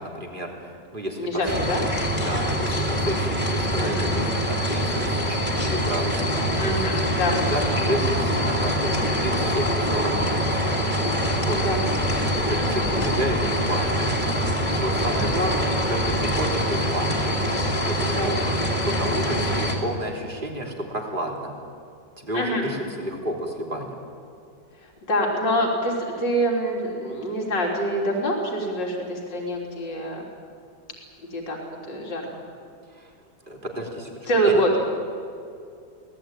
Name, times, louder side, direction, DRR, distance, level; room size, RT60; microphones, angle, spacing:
voice 1, 0.0-1.3 2.2-6.9 7.5-10.6 11.4-11.6 12.5-14.1 14.7-17.4 17.7-18.4 18.8-21.5 22.2-24.0 32.9-33.1 33.5-34.6, right 1 dB, 25° right, 1 dB, 3.5 m, -31 dB
voice 2, 1.2-1.8 3.8-4.1 6.6-7.4 8.9-9.1 11.5-11.8 12.6-12.7 15.1-15.3 18.1-18.4 19.3-19.5 22.3-22.6 25.1-30.2 31.3-31.6 31.9-32.2 34.3-34.9, equal, 75° left, -1 dB, 4.1 m, -25 dB
sound 1, 1.5-19.8, equal, 25° left, 3.0 m, -24 dB
26.0 x 18.5 x 9.1 m, 2.4 s
omnidirectional pair, 2.0 m